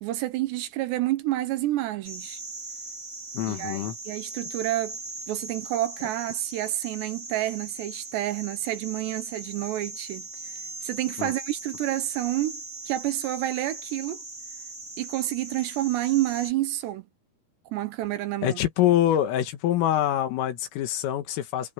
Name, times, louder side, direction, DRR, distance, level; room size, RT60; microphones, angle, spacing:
voice 1, 0.0-2.4 3.5-5.0 5.3-14.2 15.0-17.1 17.7-18.6, right 15 dB, 75° right, 2.8 m, -29 dB
sound 1, 2.0-16.5, right 3 dB, 20° right, 3.4 m, -39 dB
voice 2, 3.3-4.0 11.2-11.3 18.4-21.7, left 12 dB, 80° left, 4.4 m, -25 dB
omnidirectional pair, 5.9 m